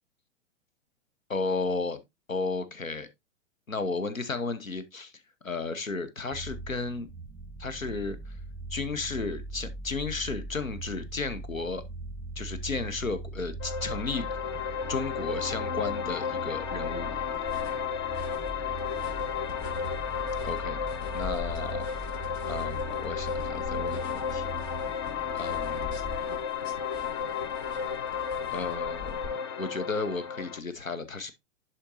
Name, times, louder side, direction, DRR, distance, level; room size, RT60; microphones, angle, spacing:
voice 1, 1.3-2.0 2.3-3.1 3.7-5.1 5.4-7.1 7.6-8.4 8.7-11.8 12.4-14.3 14.9-17.3 20.4-20.8 21.1-21.9 22.5-24.7 25.3-26.0 28.5-31.3, left 3 dB, 90° left, 1.0 m, -33 dB
sound 1, 6.3-26.2, right 2 dB, 5° right, 0.8 m, -41 dB
sound 2, 13.6-30.6, left 7 dB, 25° left, 0.3 m, -33 dB
sound 3, 17.3-29.3, left 5 dB, 50° left, 2.4 m, -44 dB
11.0 x 4.4 x 2.6 m
figure-of-eight pair, 110°, 39 cm